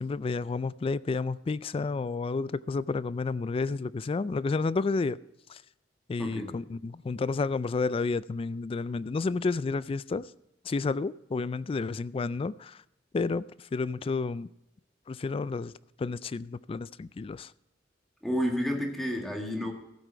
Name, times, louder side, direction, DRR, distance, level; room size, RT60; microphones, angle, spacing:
voice 1, 0.0-5.2 5.5-5.6 6.1-10.3 10.7-12.8 13.1-14.5 15.1-15.7 16.0-17.5, left 4 dB, 30° left, 0.3 m, -31 dB
voice 2, 6.2-6.6 18.2-19.7, equal, ahead, 1.8 m, -30 dB
15.0 x 8.2 x 4.5 m
head